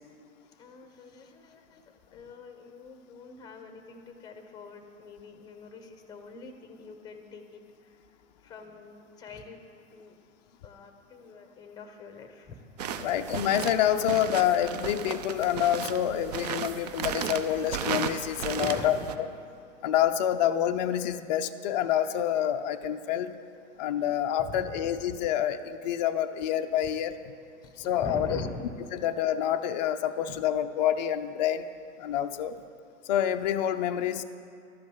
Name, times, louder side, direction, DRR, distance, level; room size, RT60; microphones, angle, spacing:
voice 1, 0.6-1.8 2.1-8.0 8.4-10.2 10.6-12.6 13.0-13.1 18.6-19.2 24.4-25.0 27.6-28.7, left 3 dB, 10° left, 7 dB, 0.7 m, -44 dB
sound 1, 12.8-19.2, right 7 dB, 35° right, 0.4 m, -35 dB
voice 2, 13.0-19.3 19.8-23.4 23.8-27.1 27.8-28.4 28.9-31.6 32.0-32.5 33.0-34.2, left 10 dB, 35° left, 8 dB, 0.4 m, -27 dB
12.0 x 5.2 x 7.9 m, 2.4 s
figure-of-eight pair, 110°, 41 cm